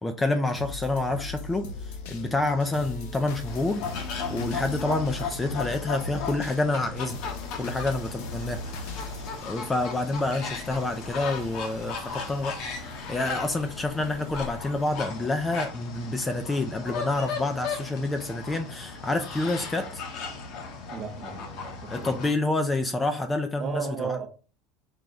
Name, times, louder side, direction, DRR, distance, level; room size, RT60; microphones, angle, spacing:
voice 1, 0.0-3.8 4.3-7.2 7.6-9.1 9.5-12.6 13.1-20.0 21.9-24.2, left 2 dB, 10° left, 0.3 m, -28 dB
sound 1, 0.5-10.6 11.1-11.2, left 3 dB, 80° left, 0.8 m, -39 dB
sound 2, 3.4-22.3, left 5 dB, 55° left, 0.9 m, -36 dB
sound 3, 8.4-14.9, right 1 dB, 75° right, 0.8 m, -50 dB
voice 2, 20.9-22.2 23.6-24.3, right 6 dB, 35° right, 0.7 m, -35 dB
4.7 x 2.2 x 3.8 m
cardioid pair, 155°, 0 cm